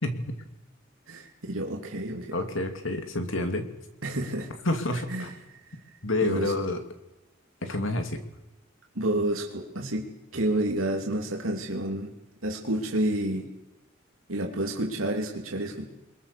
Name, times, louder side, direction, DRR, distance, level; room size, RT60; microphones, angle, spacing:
voice 1, 0.0-0.3 2.3-3.7 4.6-5.3 6.0-6.8 7.6-8.2, left 2 dB, 70° left, 7 dB, 2.7 m, -28 dB
voice 2, 1.1-2.4 4.0-4.5 5.1-5.3 5.5-5.7 6.2-6.5 8.9-10.1 10.3-12.1 12.4-13.5 14.3-15.9, right 1 dB, 90° right, 1 dB, 2.9 m, -29 dB
24.0 x 21.5 x 6.9 m, 1.0 s
head